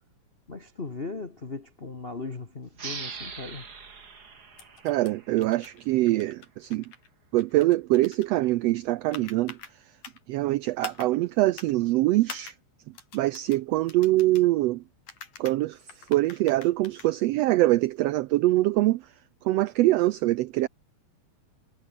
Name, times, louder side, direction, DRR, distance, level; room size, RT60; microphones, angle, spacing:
voice 1, 0.5-3.7, left 3 dB, 35° left, 0.9 m, -38 dB
sound 1, 2.7-6.0, right 5 dB, 35° right, 2.5 m, -42 dB
sound 2, 4.6-5.1 5.4-5.8 6.1-7.1 7.4-8.3 9.1-9.7 10.0-10.2 10.8-11.1 11.5-11.7 12.3-12.6 13.0-13.6 13.9-14.5 15.1-15.6 15.9-17.1, left 6 dB, 85° left, 5.5 m, -44 dB
voice 2, 4.8-6.8 7.3-9.6 10.3-12.5 13.1-14.8 15.4-19.1 19.4-20.7, right 17 dB, 85° right, 1.4 m, -24 dB
omnidirectional pair, 3.5 m